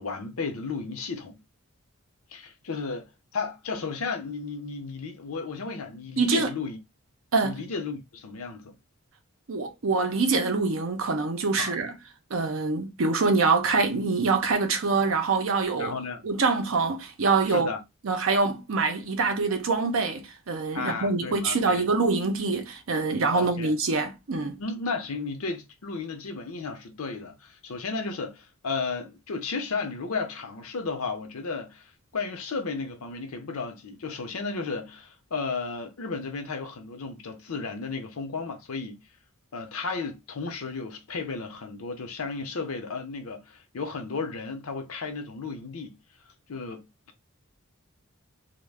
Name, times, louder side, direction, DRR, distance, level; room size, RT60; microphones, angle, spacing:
voice 1, 0.0-1.4 2.3-6.8 7.4-8.8 11.6-11.7 15.8-16.2 17.5-17.8 20.7-21.8 23.3-23.7 24.6-39.0 39.5-46.0 46.5-46.9, left 4 dB, 85° left, 0.7 m, -34 dB
voice 2, 6.2-6.5 7.3-7.6 9.5-11.9 12.3-15.9 16.2-17.7 18.0-24.6, right 4 dB, 65° right, 0.6 m, -25 dB
2.3 x 2.1 x 3.3 m
head